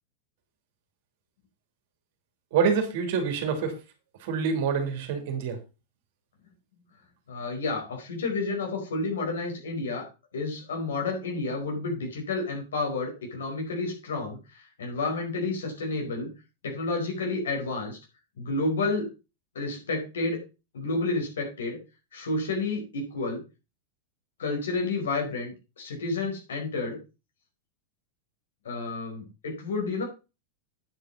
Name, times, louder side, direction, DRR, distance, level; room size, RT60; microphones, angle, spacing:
voice 1, 2.5-3.7 4.2-5.6, right 6 dB, 50° right, 5 dB, 3.0 m, -26 dB
voice 2, 7.3-16.3 16.6-18.0 18.4-19.1 19.5-20.4 20.7-21.8 22.1-23.4 24.4-27.0 28.6-30.0, left 3 dB, 65° left, 1 dB, 4.8 m, -30 dB
9.6 x 8.5 x 4.1 m, 0.29 s
figure-of-eight pair, 90°, 0 cm